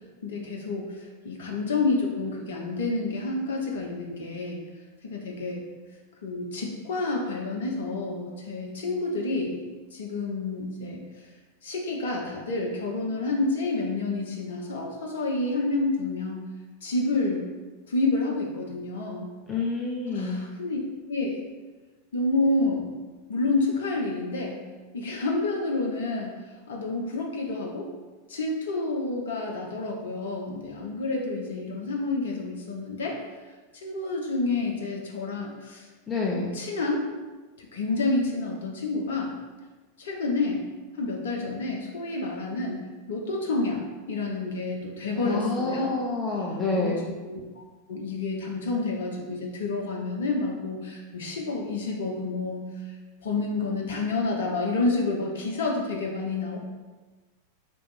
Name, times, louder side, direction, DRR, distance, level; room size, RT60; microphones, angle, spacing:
voice 1, 0.2-1.0 1.2-4.6 5.0-5.6 6.2-9.6 9.9-11.1 11.6-16.5 16.8-17.5 17.9-19.3 20.1-20.8 21.1-21.4 22.1-22.9 23.3-24.6 24.9-26.3 26.7-27.9 28.3-33.2 33.8-35.8 36.3-37.0 37.7-39.3 40.0-40.6 41.0-43.8 44.1-46.0 46.7-47.0 47.2-47.6 47.9-52.7 53.2-56.6, left 3 dB, 60° left, 0 dB, 0.8 m, -29 dB
voice 2, 19.5-20.5 36.1-36.5 45.2-47.1, left 3 dB, 20° left, -3 dB, 0.6 m, -28 dB
3.4 x 3.0 x 4.7 m, 1.3 s
figure-of-eight pair, 90°, 0 cm